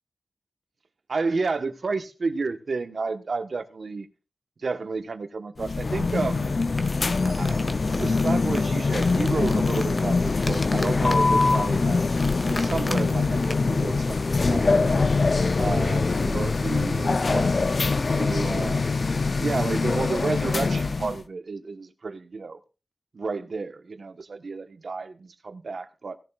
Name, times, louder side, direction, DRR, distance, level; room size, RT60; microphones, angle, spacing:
voice 1, 1.1-4.1 4.6-6.5 7.2-12.0 12.4-15.0 15.6-17.6 18.1-18.9 19.4-22.6 23.1-26.2, right 4 dB, 70° right, 1.2 m, -31 dB
sound 1, 5.6-21.2, left 3 dB, 55° left, 0.6 m, -23 dB
sound 2, 6.4-13.9, left 1 dB, 25° left, 1.5 m, -38 dB
17.0 x 11.0 x 2.4 m
wide cardioid pair, 75°, 0 cm